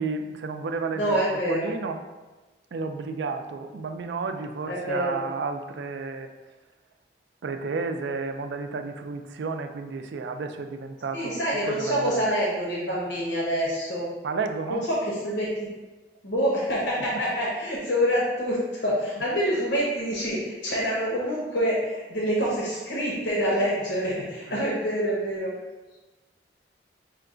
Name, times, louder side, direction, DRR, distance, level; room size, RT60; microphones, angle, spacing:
voice 1, 0.0-1.2 1.5-2.0 2.7-6.3 7.4-12.3 14.2-14.9 17.0-17.2 24.5-24.6, right 4 dB, 70° right, 7 dB, 0.4 m, -32 dB
voice 2, 0.9-1.7 4.7-5.2 11.1-14.1 14.7-15.7 16.2-25.5, equal, 80° left, -5 dB, 0.9 m, -26 dB
5.7 x 2.3 x 3.7 m, 1.2 s
head